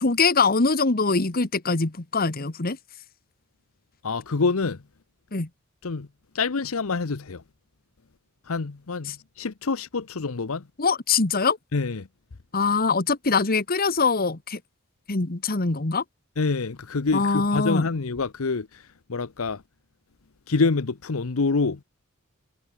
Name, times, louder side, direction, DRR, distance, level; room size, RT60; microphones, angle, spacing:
voice 1, 0.0-2.8 5.3-5.5 9.1-9.2 10.8-11.6 12.5-14.6 15.1-16.0 17.1-17.9, left 4 dB, 45° left, 1.4 m, -23 dB
voice 2, 4.0-4.8 5.8-6.1 6.3-7.4 8.5-9.1 9.4-10.6 11.7-12.1 16.4-18.7 19.1-19.6 20.5-21.8, left 4 dB, 75° left, 0.8 m, -26 dB
head